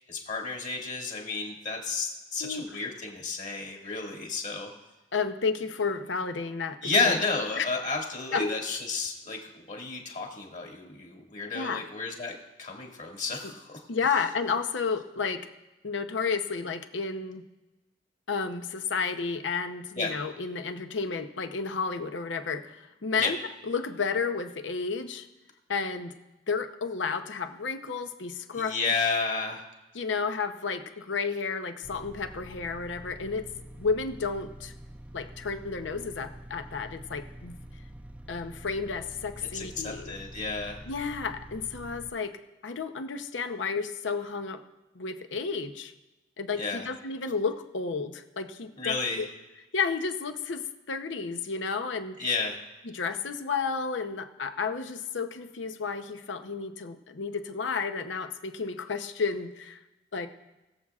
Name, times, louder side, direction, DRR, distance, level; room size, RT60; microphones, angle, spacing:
voice 1, 0.1-4.7 6.8-13.8 20.0-20.1 23.2-23.3 28.5-29.6 39.5-40.8 46.6-46.9 48.8-49.2 52.2-52.6, left 4 dB, 45° left, 0 dB, 2.0 m, -31 dB
voice 2, 2.4-2.8 3.8-3.9 5.1-6.8 7.0-7.1 7.6-7.7 8.3-8.4 11.5-11.8 13.4-13.5 13.9-15.5 15.8-17.4 18.3-23.4 23.6-25.3 25.7-26.1 26.5-28.8 29.9-33.5 33.8-34.7 35.1-37.5 38.3-40.2 40.9-42.4 42.6-44.6 44.9-45.9 46.4-49.3 49.7-52.2 52.8-59.8 60.1-60.3, left 5 dB, 80° left, 8 dB, 0.7 m, -32 dB
sound 1, 31.8-42.1, right 1 dB, 5° right, 0.3 m, -46 dB
21.5 x 7.5 x 2.4 m, 1.0 s
head